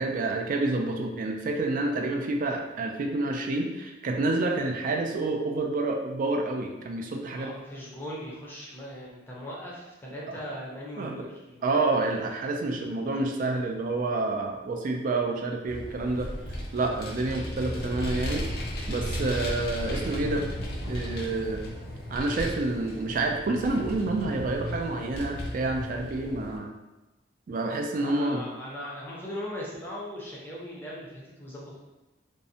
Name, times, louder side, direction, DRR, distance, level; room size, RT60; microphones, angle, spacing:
voice 1, 0.0-7.5 10.3-10.4 11.0-11.1 11.6-16.3 16.7-18.4 18.9-20.5 20.9-21.6 22.1-26.7 27.5-28.4, right 2 dB, 45° right, 3 dB, 0.3 m, -28 dB
voice 2, 7.3-11.8 27.9-31.8, equal, 10° left, -5 dB, 0.5 m, -39 dB
Vehicle, 15.7-26.6, equal, 60° left, 0.5 m, -35 dB
2.5 x 2.0 x 2.6 m, 1.0 s
head